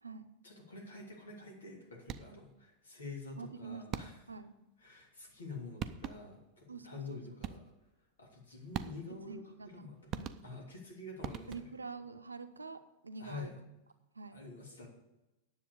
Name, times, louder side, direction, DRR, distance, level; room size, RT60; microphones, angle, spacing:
voice 1, 0.4-4.2 4.8-7.7 8.2-9.4 9.7-11.7 13.2-13.5 14.3-14.9, left 3 dB, 70° left, 0 dB, 3.0 m, -47 dB
sound 1, 2.0-2.5 3.9-4.4 5.5-5.6 5.8-6.4 7.4-7.9 8.7-9.3 10.1-10.8 11.2-11.9, right 8 dB, 30° right, 0.6 m, -42 dB
voice 2, 3.3-4.6 6.7-7.2 9.3-10.4 11.5-13.5 14.1-14.4, right 4 dB, 80° right, 10 dB, 0.7 m, -47 dB
10.0 x 7.4 x 6.7 m, 0.97 s
figure-of-eight pair, 90°, 0 cm